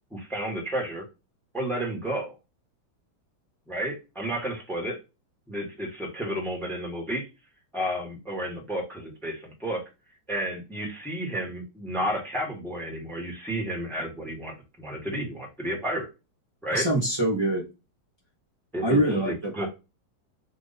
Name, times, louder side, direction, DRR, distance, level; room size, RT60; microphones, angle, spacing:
voice 1, 0.1-1.0 1.5-2.3 3.7-5.0 5.5-7.3 7.7-9.8 10.3-16.1 16.6-16.9 18.7-19.0 19.3-19.7, right 1 dB, ahead, 1 dB, 1.1 m, -31 dB
voice 2, 16.7-17.7 18.8-19.7, right 1 dB, 20° right, -3 dB, 0.8 m, -24 dB
4.5 x 2.7 x 4.1 m, 0.27 s
omnidirectional pair, 2.1 m